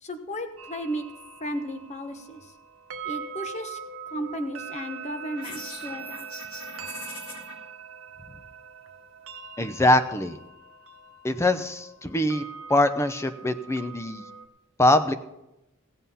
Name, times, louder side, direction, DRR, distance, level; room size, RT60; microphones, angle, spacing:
voice 1, 0.0-1.1 1.4-2.5 3.0-3.8 4.1-6.3 8.3-8.4, equal, 30° left, 7 dB, 1.1 m, -34 dB
sound 1, 0.6-14.5, right 6 dB, 70° right, 1.0 m, -42 dB
sound 2, 5.3-7.5, left 2 dB, 90° left, 4.0 m, -41 dB
voice 2, 9.6-10.4 11.2-12.4 12.7-14.2 14.8-15.2, left 1 dB, 15° left, 10 dB, 0.7 m, -23 dB
16.5 x 7.9 x 5.6 m, 0.91 s
head